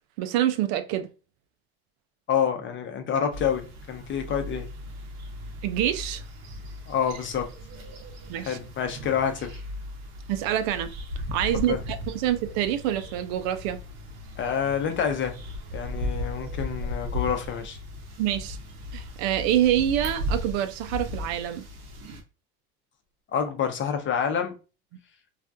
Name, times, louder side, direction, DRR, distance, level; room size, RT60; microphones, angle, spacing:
voice 1, 0.2-1.1 5.6-6.2 8.3-8.6 10.3-10.9 11.3-13.8 18.2-18.6 18.9-21.6, right 11 dB, 75° right, 0.5 m, -26 dB
voice 2, 2.3-4.7 6.9-7.5 8.4-9.6 11.5-11.8 14.4-15.4 15.7-17.8 23.3-24.5, left 7 dB, 40° left, 0.6 m, -27 dB
sound 1, 3.3-22.2, left 1 dB, 55° right, 0.9 m, -37 dB
2.4 x 2.1 x 2.5 m
supercardioid pair, 90°, 31 cm